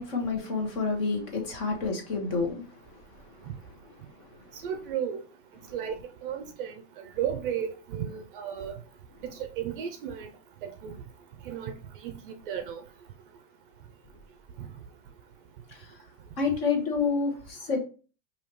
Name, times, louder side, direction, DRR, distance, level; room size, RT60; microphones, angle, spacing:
voice 1, 0.0-3.5 4.1-4.5 5.7-5.8 15.7-16.0 16.4-17.8, left 4 dB, 45° left, 1.3 m, -30 dB
voice 2, 4.6-5.2 5.7-6.0 6.2-6.8 7.2-8.8 9.3-10.3 10.6-10.9 11.5-11.7 12.0-12.8, right 9 dB, 45° right, 0.4 m, -33 dB
4.9 x 2.7 x 3.0 m
supercardioid pair, 175°, 39 cm